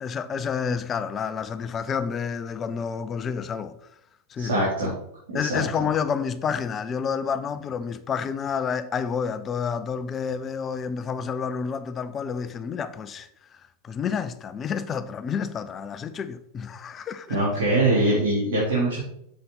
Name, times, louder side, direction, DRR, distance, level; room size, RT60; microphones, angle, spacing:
voice 1, 0.0-3.8 4.3-4.7 5.3-17.4, left 6 dB, 25° left, 0.6 m, -29 dB
voice 2, 4.4-4.9 5.3-5.6 17.3-19.0, right 1 dB, 60° right, 3.5 m, -23 dB
7.6 x 7.2 x 4.1 m
figure-of-eight pair, 90°, 0 cm